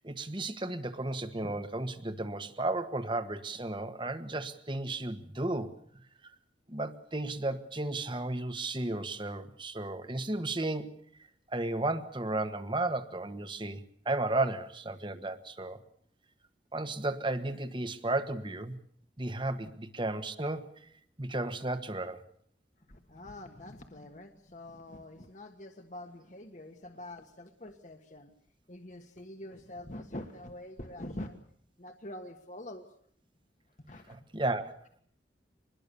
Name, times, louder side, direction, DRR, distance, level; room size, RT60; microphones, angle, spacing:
voice 1, 0.0-5.8 6.7-11.0 11.5-15.8 16.7-18.8 19.2-20.9 21.2-22.2 34.1-34.6, right 2 dB, 25° right, 10 dB, 1.4 m, -34 dB
voice 2, 22.8-28.3 28.7-31.4 31.8-32.9 33.9-34.2, left 1 dB, 45° left, 5 dB, 1.5 m, -45 dB
25.0 x 21.0 x 7.0 m, 0.64 s
head